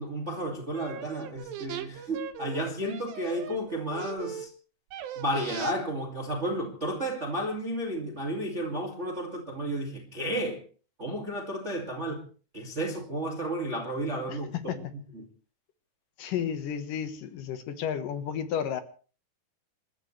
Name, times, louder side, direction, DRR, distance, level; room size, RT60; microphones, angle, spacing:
voice 1, 0.0-4.5 5.2-10.6 11.0-12.2 12.5-15.3, right 1 dB, 25° right, 1 dB, 1.9 m, -32 dB
sound 1, 0.7-4.5 4.9-5.7 6.3-6.4, right 10 dB, 90° right, 3.3 m, -39 dB
voice 2, 14.3-14.8 16.2-18.8, left 8 dB, 65° left, 9 dB, 2.7 m, -32 dB
28.0 x 13.5 x 3.3 m, 0.38 s
omnidirectional pair, 4.7 m